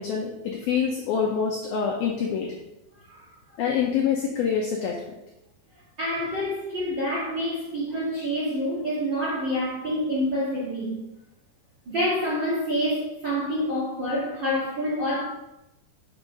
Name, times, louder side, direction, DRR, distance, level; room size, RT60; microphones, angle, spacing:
voice 1, 0.0-2.6 3.6-5.0, left 7 dB, 80° left, 1 dB, 2.1 m, -26 dB
voice 2, 6.0-11.0 11.8-15.2, equal, 40° right, -6 dB, 1.7 m, -27 dB
8.0 x 6.5 x 5.3 m, 0.92 s
omnidirectional pair, 5.4 m